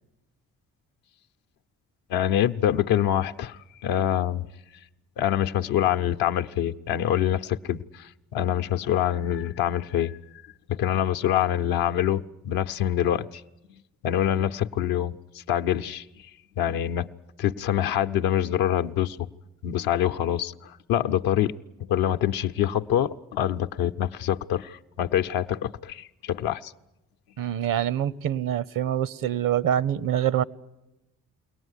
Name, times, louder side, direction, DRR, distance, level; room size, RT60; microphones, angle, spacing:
voice 1, 2.1-4.5 5.2-10.2 10.7-13.4 14.0-16.0 16.6-17.1 17.4-19.3 19.6-21.5 21.8-26.7, left 11 dB, 80° left, 0.7 m, -25 dB
voice 2, 27.4-30.4, right 10 dB, 65° right, 0.8 m, -25 dB
22.5 x 18.5 x 9.8 m
hypercardioid pair, 50°, 36 cm